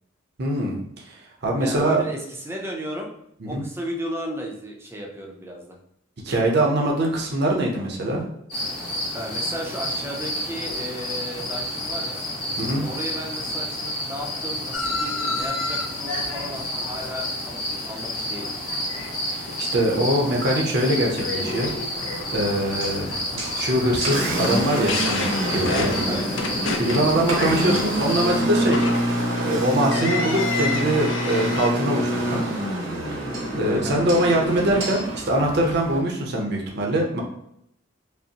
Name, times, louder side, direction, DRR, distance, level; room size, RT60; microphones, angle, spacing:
voice 1, 0.4-0.8 1.1-1.2 1.4-2.0 3.4-3.6 6.2-8.3 12.6-12.8 19.3-21.7 22.3-26.2 26.8-28.9 29.4-32.4 33.5-37.2, right 1 dB, 55° right, 0 dB, 0.7 m, -23 dB
voice 2, 1.6-3.1 3.5-5.8 9.1-12.2 12.8-18.6 25.7-26.4 33.7-34.0, equal, 10° right, 0 dB, 0.6 m, -34 dB
sound 1, 8.5-28.4, left 1 dB, 40° left, 1.3 m, -30 dB
sound 2, 14.7-18.1 18.3-19.1 19.5-19.9 20.3-20.4 20.9-31.7, left 3 dB, 70° left, 0.5 m, -31 dB
Engine, 21.9-36.0, right 1 dB, 85° right, 1.0 m, -27 dB
5.1 x 2.1 x 2.8 m, 0.75 s
head